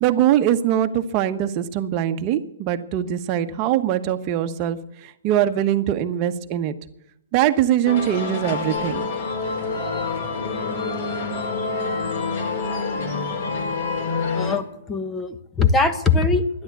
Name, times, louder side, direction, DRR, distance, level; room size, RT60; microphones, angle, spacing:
voice 1, 0.0-6.7 7.3-9.1, right 11 dB, 35° right, 7 dB, 1.1 m, -22 dB
sound 1, 7.9-14.5, left 4 dB, 55° left, 3.6 m, -27 dB
voice 2, 14.3-16.6, left 4 dB, 10° left, 9 dB, 1.1 m, -21 dB
12.0 x 10.5 x 8.4 m, 0.78 s
hypercardioid pair, 140°, 0 cm